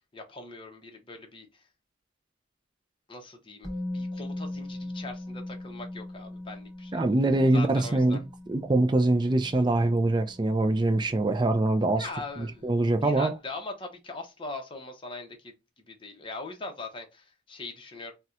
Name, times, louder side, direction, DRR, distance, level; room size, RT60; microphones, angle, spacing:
voice 1, 0.1-1.6 3.1-7.0 7.5-8.2 11.9-18.1, left 2 dB, 25° left, 0.6 m, -41 dB
Musical instrument, 3.6-11.5 11.8-12.0, left 1 dB, ahead, 1.1 m, -40 dB
voice 2, 6.9-8.2 8.5-12.1 12.4-13.3, right 2 dB, 20° right, 0.4 m, -24 dB
4.1 x 2.1 x 2.4 m
head